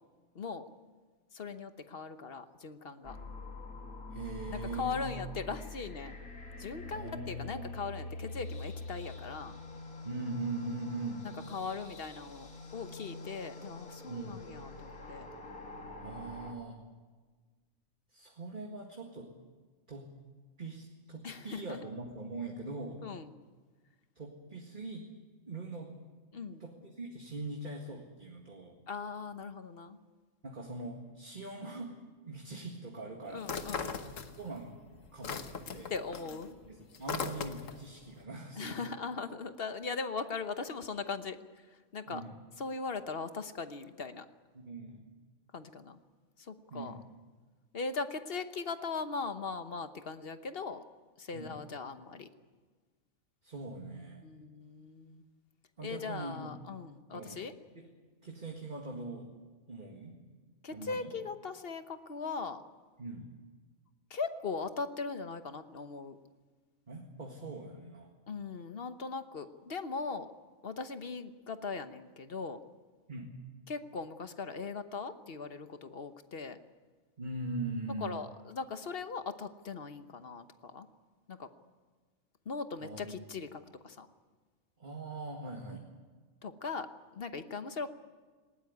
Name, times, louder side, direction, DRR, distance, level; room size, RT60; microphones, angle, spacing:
voice 1, 0.3-0.7 1.3-3.2 4.5-6.2 6.6-9.6 11.2-15.3 21.2-21.8 23.0-23.3 26.3-26.6 28.9-30.0 33.3-33.9 35.9-36.5 38.6-42.2 42.6-44.3 45.5-46.0 46.4-47.0 47.7-50.8 51.2-52.3 54.2-55.2 55.8-57.5 60.6-62.6 64.1-66.2 68.3-70.3 70.6-72.6 73.7-76.6 78.0-80.9 81.3-81.5 82.4-84.1 86.4-87.9, left 4 dB, 45° left, 10 dB, 1.2 m, -39 dB
sound 1, 3.0-16.5, left 2 dB, 85° left, 2.8 m, -45 dB
voice 2, 4.1-5.1 6.9-7.6 10.1-11.3 14.0-14.4 16.0-16.8 18.1-19.3 19.9-20.2 20.6-23.0 24.2-25.1 25.5-26.0 26.6-28.8 30.4-32.0 32.3-33.7 34.0-34.8 35.1-35.4 35.7-35.9 36.6-38.8 42.1-42.4 44.5-45.1 46.7-47.0 51.3-51.6 53.4-54.2 55.8-56.6 57.1-57.5 57.8-57.9 58.2-59.4 59.7-60.2 60.7-61.1 63.0-63.3 66.9-68.1 73.1-73.4 77.2-78.2 82.8-83.5 84.8-85.8, right 2 dB, 35° right, 1 dB, 2.0 m, -42 dB
sound 2, 33.4-34.7 35.0-37.9, left 5 dB, 65° left, 1.6 m, -39 dB
19.0 x 18.0 x 9.6 m, 1.4 s
omnidirectional pair, 1.4 m